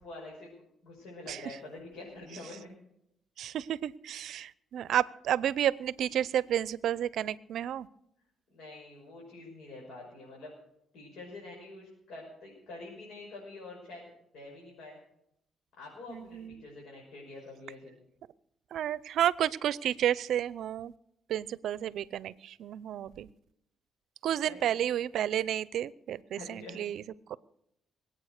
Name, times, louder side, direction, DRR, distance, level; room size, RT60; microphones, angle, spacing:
voice 1, 0.0-2.7 8.5-10.5 10.9-14.0 14.3-15.0 15.8-17.9 24.5-24.6 26.4-26.8, left 2 dB, 80° left, -3 dB, 6.0 m, -46 dB
voice 2, 3.4-7.9 16.1-16.6 18.7-20.9 21.3-23.3 24.2-27.0 27.3-27.4, right 11 dB, 75° right, 20 dB, 0.5 m, -31 dB
22.0 x 8.8 x 6.5 m, 0.77 s
cardioid pair, 90°, 0 cm